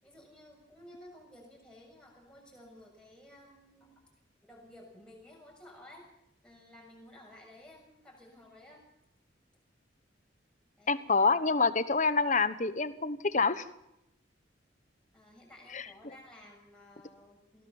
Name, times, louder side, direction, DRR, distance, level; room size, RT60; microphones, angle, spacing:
voice 1, 0.0-4.0 4.4-6.1 6.4-8.8 10.8-11.3 15.1-17.7, left 1 dB, 5° left, -1 dB, 7.1 m, -54 dB
voice 2, 10.9-13.7 15.7-15.8, left 4 dB, 40° left, 13 dB, 1.1 m, -27 dB
23.0 x 17.0 x 7.2 m, 0.82 s
head